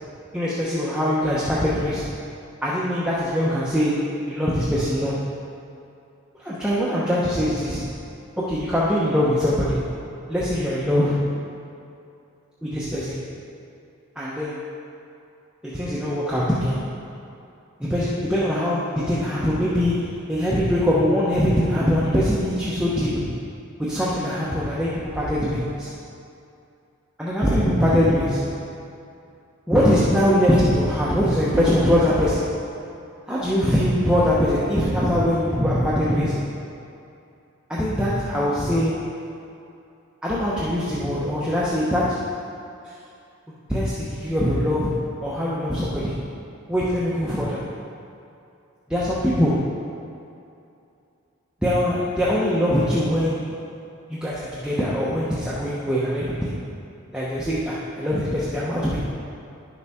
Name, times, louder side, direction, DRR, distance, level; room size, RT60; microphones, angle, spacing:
voice 1, 0.3-2.1 2.6-5.2 6.4-7.9 8.4-9.9 10.3-11.4 12.6-13.2 14.2-14.7 15.6-16.9 17.8-23.4 23.8-25.9 27.2-28.7 29.7-32.7 33.3-36.5 37.7-39.2 40.2-42.4 42.8-42.9 43.7-46.3 46.7-47.7 48.9-49.9 51.6-53.7 54.1-56.6 57.1-59.0, equal, 5° right, -9 dB, 0.8 m, -22 dB
11.0 x 6.8 x 3.6 m, 2.6 s
head